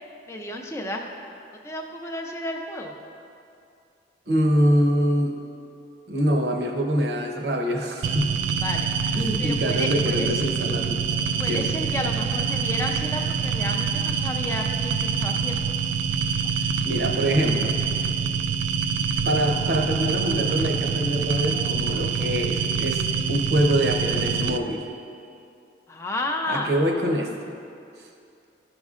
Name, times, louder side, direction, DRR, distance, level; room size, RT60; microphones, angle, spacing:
voice 1, 0.3-1.0 1.6-2.9 8.6-8.9 9.4-10.3 11.4-15.6 25.9-26.7, left 1 dB, 15° left, 1 dB, 0.4 m, -32 dB
voice 2, 4.3-5.3 6.1-8.5 9.1-11.0 11.4-11.7 16.5-17.7 19.3-24.9 26.4-27.5, equal, 60° right, 2 dB, 0.8 m, -24 dB
sound 1, 8.0-24.6, right 6 dB, 85° right, 0.3 m, -26 dB
13.0 x 5.2 x 2.4 m, 2.6 s
head